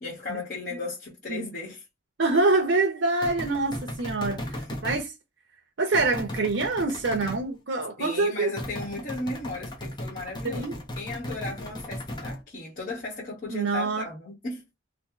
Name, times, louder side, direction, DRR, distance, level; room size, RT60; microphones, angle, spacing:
voice 1, 0.0-1.8 8.0-14.6, left 2 dB, 50° left, 1.0 m, -36 dB
voice 2, 2.2-5.1 5.8-8.5 10.4-10.8 13.5-14.0, right 3 dB, 85° right, 0.6 m, -25 dB
sound 1, 3.2-5.0 5.9-7.4 8.6-12.4, left 1 dB, 25° left, 0.7 m, -36 dB
2.9 x 2.2 x 3.6 m
head